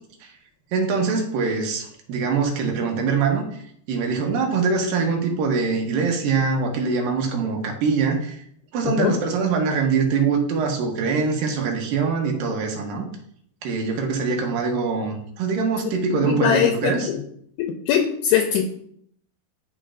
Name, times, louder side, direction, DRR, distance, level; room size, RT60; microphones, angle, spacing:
voice 1, 0.7-3.4 3.9-8.4 8.7-13.1 13.6-17.1, right 5 dB, 70° right, 2 dB, 2.6 m, -23 dB
voice 2, 16.2-17.2 17.6-18.6, left 9 dB, 80° left, 4 dB, 2.4 m, -21 dB
12.0 x 4.5 x 2.5 m, 0.68 s
omnidirectional pair, 4.6 m